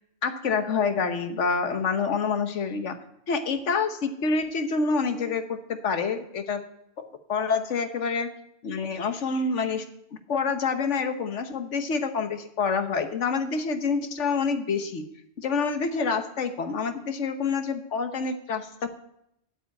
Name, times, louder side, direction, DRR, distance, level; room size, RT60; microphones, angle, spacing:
voice 1, 0.2-3.0 3.3-6.6 7.0-8.3 8.6-15.0 15.4-18.9, left 5 dB, 75° left, 8 dB, 1.4 m, -27 dB
9.3 x 8.5 x 8.3 m, 0.77 s
omnidirectional pair, 1.2 m